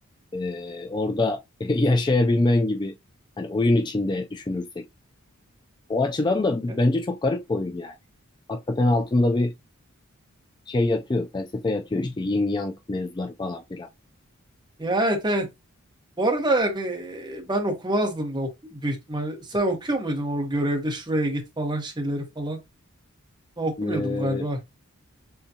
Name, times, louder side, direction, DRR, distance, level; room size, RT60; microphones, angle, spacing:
voice 1, 0.3-3.0 3.4-4.8 5.9-8.0 8.5-9.5 10.7-13.9 23.8-24.5, left 2 dB, 20° left, 0.3 m, -24 dB
voice 2, 14.8-15.5 16.2-22.6 23.6-24.6, right 1 dB, 20° right, 1.1 m, -26 dB
6.9 x 2.3 x 2.8 m
head